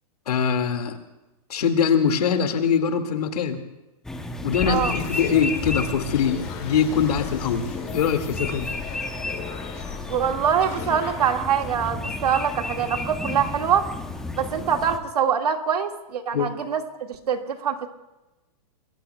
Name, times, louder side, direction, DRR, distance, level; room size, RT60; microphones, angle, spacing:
voice 1, 0.3-1.0 1.5-3.6 4.4-7.7 7.9-8.7 16.3-16.5, left 7 dB, 80° left, 6 dB, 2.1 m, -23 dB
sound 1, 4.0-15.0, left 2 dB, 5° left, 0.7 m, -33 dB
sound 2, 4.7-12.9, left 8 dB, 30° left, 1.7 m, -39 dB
voice 2, 10.1-13.9 14.4-16.8 17.1-17.9, right 8 dB, 90° right, 4 dB, 1.9 m, -24 dB
27.0 x 21.5 x 2.3 m, 1.0 s
hypercardioid pair, 165°, 20 cm